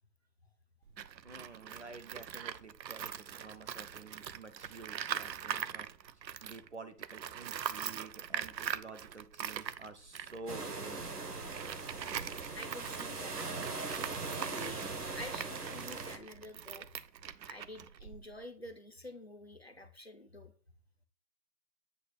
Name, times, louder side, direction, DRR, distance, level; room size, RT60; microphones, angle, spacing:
Tools, 0.9-6.7 7.0-18.5, right 9 dB, 85° right, 0.7 m, -42 dB
voice 1, 1.2-5.9 6.4-11.1, right 3 dB, 45° right, 9 dB, 0.7 m, -50 dB
sound 1, 10.5-16.2, right 3 dB, 65° right, 1.5 m, -40 dB
voice 2, 12.5-13.4 14.4-14.8 15.1-16.9 17.5-20.5, left 1 dB, 40° left, 6 dB, 0.6 m, -48 dB
8.3 x 2.8 x 5.8 m, 0.41 s
hypercardioid pair, 180°, 50 cm